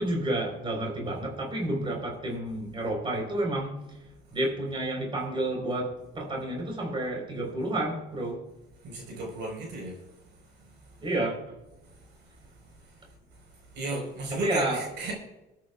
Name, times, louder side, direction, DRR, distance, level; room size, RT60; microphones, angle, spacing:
voice 1, 0.0-3.8 4.3-8.5 11.0-11.6 14.3-14.8, right 1 dB, 25° right, 4.1 m, -30 dB
voice 2, 8.8-9.9 13.7-15.1, right 2 dB, 65° right, 4.4 m, -33 dB
24.5 x 9.4 x 2.4 m
cardioid pair, 110°, 19 cm